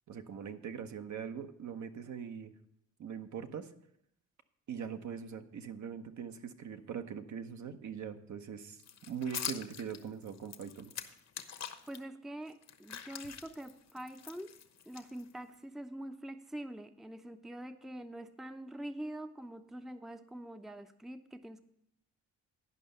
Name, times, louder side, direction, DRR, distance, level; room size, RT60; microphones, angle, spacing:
voice 1, 0.1-2.5 3.0-3.7 4.7-10.9, right 7 dB, 60° right, 7 dB, 0.9 m, -42 dB
sound 1, 8.8-12.0 12.5-15.5, left 8 dB, 50° left, 1.0 m, -44 dB
voice 2, 11.9-14.5 14.9-21.6, right 1 dB, ahead, 9 dB, 0.6 m, -45 dB
11.0 x 5.4 x 6.7 m, 0.74 s
supercardioid pair, 60°, 33 cm